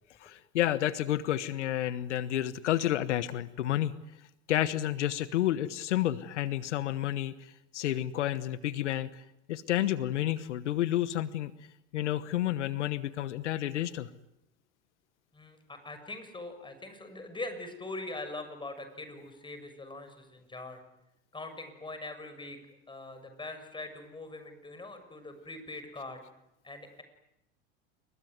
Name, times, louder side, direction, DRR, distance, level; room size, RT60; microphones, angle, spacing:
voice 1, 0.2-3.9 4.5-11.5 11.9-14.1, left 13 dB, 90° left, 15 dB, 1.2 m, -30 dB
voice 2, 15.3-20.8 21.3-22.6 22.9-26.2 26.6-27.0, left 2 dB, 15° left, 8 dB, 6.7 m, -42 dB
28.5 x 22.0 x 9.4 m, 0.86 s
hypercardioid pair, 100°, 34 cm